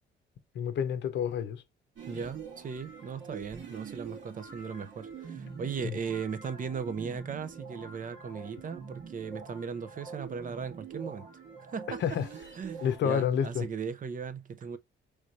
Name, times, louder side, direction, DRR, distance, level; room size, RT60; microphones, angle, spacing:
voice 1, 0.5-1.6 5.5-5.6 5.8-5.9 12.0-12.3 12.8-13.7, left 8 dB, 65° left, 0.6 m, -29 dB
sound 1, 2.0-13.0, right 5 dB, 70° right, 1.7 m, -45 dB
voice 2, 2.1-11.3 11.7-12.0 12.5-14.8, right 6 dB, 45° right, 0.6 m, -37 dB
3.2 x 3.2 x 2.5 m
cardioid pair, 90°, 20 cm